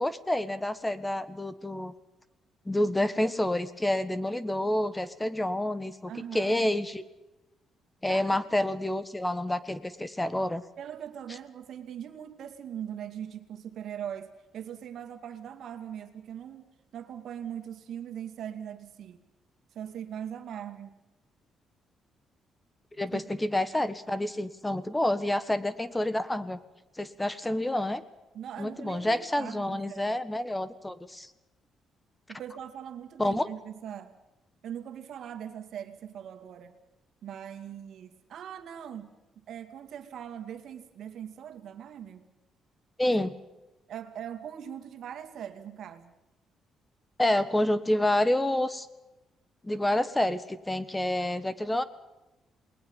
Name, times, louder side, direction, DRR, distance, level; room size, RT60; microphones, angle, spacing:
voice 1, 0.0-1.9 2.6-7.0 8.0-10.6 23.0-26.6 27.0-28.0 28.6-31.3 33.2-33.5 43.0-43.4 47.2-48.9 49.6-51.8, left 1 dB, 10° left, 14 dB, 1.5 m, -28 dB
voice 2, 6.1-6.7 8.1-8.4 10.8-19.2 19.7-20.9 23.1-23.2 28.3-30.2 32.3-34.1 34.6-36.7 37.2-42.3 43.1-43.2 43.9-46.1, right 9 dB, 70° right, 8 dB, 2.4 m, -41 dB
28.0 x 20.5 x 5.5 m, 1.0 s
cardioid pair, 90°, 0 cm